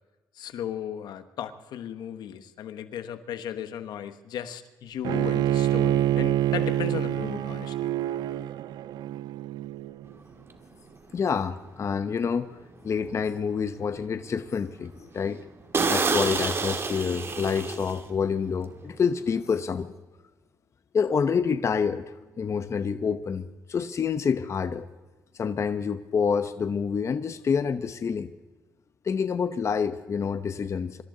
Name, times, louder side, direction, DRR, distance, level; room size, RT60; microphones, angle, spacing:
voice 1, 0.3-7.9, left 9 dB, 75° left, 10 dB, 1.1 m, -36 dB
Bowed string instrument, 5.0-10.1, right 12 dB, 75° right, 0.4 m, -26 dB
sound 1, 10.5-10.6 11.2-11.4 11.9-12.0 12.4-12.5 12.9-13.5 13.9-14.0 14.4-14.6 14.8-14.9 15.3-15.4 15.7-18.3 18.5-18.8, right 4 dB, 35° right, 1.8 m, -28 dB
voice 2, 11.1-12.5 12.8-15.4 15.9-19.9 20.9-24.9 25.4-28.3 29.0-31.0, left 6 dB, 40° left, 11 dB, 0.8 m, -27 dB
26.0 x 13.5 x 3.8 m, 1.2 s
cardioid pair, 90°, 7 cm